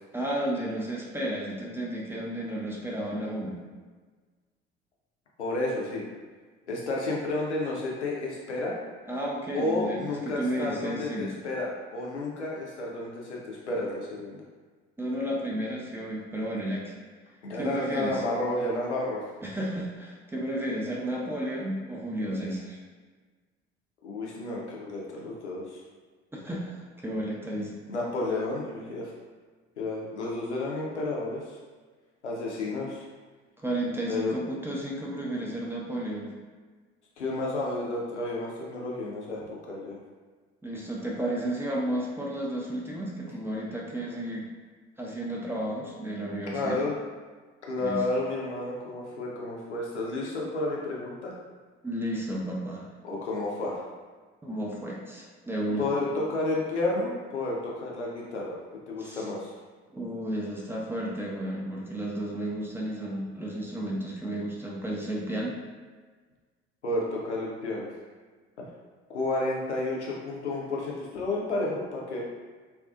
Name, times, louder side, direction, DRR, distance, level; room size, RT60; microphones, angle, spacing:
voice 1, 0.1-3.6 9.1-11.3 15.0-17.0 17.6-18.2 19.4-22.8 26.3-27.7 33.6-36.3 40.6-44.5 45.0-46.8 47.8-48.0 51.8-52.9 54.4-55.9 59.0-59.2 59.9-65.6, right 1 dB, 5° right, -4 dB, 0.3 m, -32 dB
voice 2, 5.4-6.0 6.7-8.8 9.5-14.4 17.4-19.2 24.0-25.8 27.5-29.1 29.8-31.6 32.2-33.0 34.1-34.3 37.2-39.4 39.7-40.0 46.5-46.9 47.6-51.3 53.0-53.8 55.8-58.6 58.9-59.5 66.8-67.9 69.1-72.2, left 2 dB, 90° left, -3 dB, 0.5 m, -31 dB
2.4 x 2.3 x 2.3 m, 1.4 s
figure-of-eight pair, 55°, 34 cm